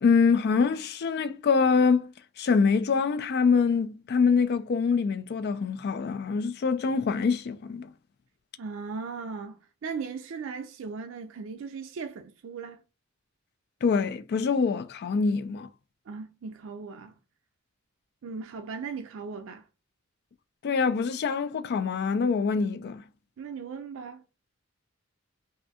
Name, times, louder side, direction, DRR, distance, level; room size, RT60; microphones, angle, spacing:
voice 1, 0.0-2.1 2.4-7.9 13.8-15.7 20.6-23.0, left 5 dB, 50° left, 0.3 m, -25 dB
voice 2, 8.6-12.8 16.1-17.1 18.2-19.6 23.4-24.2, right 5 dB, 70° right, 0.4 m, -38 dB
3.2 x 2.6 x 2.7 m
head